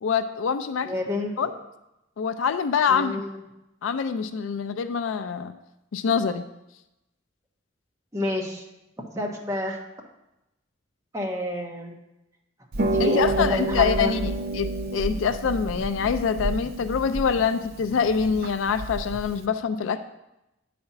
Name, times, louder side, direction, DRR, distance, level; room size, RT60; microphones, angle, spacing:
voice 1, 0.0-1.0 1.4-1.5 2.2-3.2 3.8-5.5 5.9-6.5 13.0-20.0, left 6 dB, 80° left, 10 dB, 0.4 m, -25 dB
voice 2, 0.8-1.6 2.9-3.4 8.1-8.6 9.1-9.8 11.1-12.0 12.9-14.1, left 1 dB, 15° right, -1 dB, 1.1 m, -29 dB
Harp, 12.7-19.5, right 2 dB, 50° right, 0.5 m, -29 dB
8.8 x 4.2 x 5.7 m, 0.92 s
head